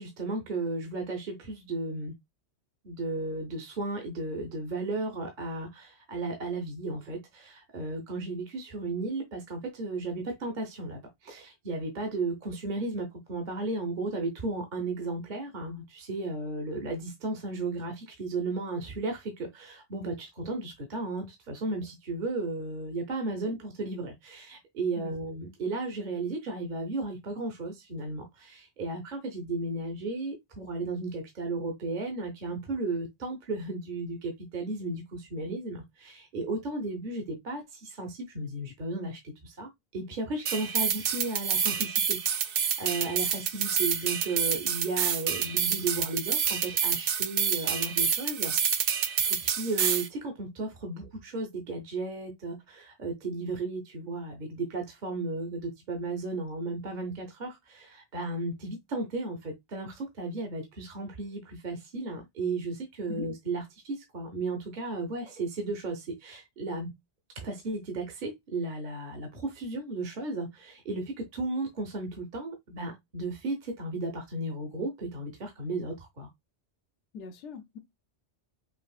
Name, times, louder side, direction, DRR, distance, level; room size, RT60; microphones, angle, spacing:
voice 1, 0.0-2.1 2.8-48.5 49.2-66.9 67.4-76.3, right 2 dB, 45° right, 1.0 m, -34 dB
sound 1, 40.5-50.1, right 7 dB, 60° right, 0.7 m, -28 dB
voice 2, 77.1-77.8, left 5 dB, 85° left, 0.9 m, -41 dB
5.4 x 3.1 x 2.4 m
omnidirectional pair, 1.2 m